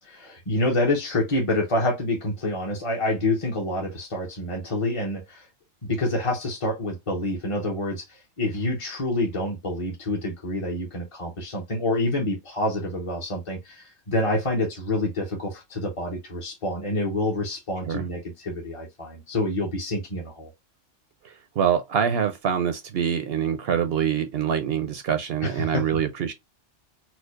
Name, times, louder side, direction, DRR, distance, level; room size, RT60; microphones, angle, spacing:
voice 1, 0.0-5.5 5.8-20.5 25.4-25.8, left 1 dB, 30° left, 0.8 m, -27 dB
voice 2, 21.2-26.3, right 8 dB, 65° right, 0.7 m, -25 dB
4.4 x 2.3 x 2.4 m
omnidirectional pair, 1.2 m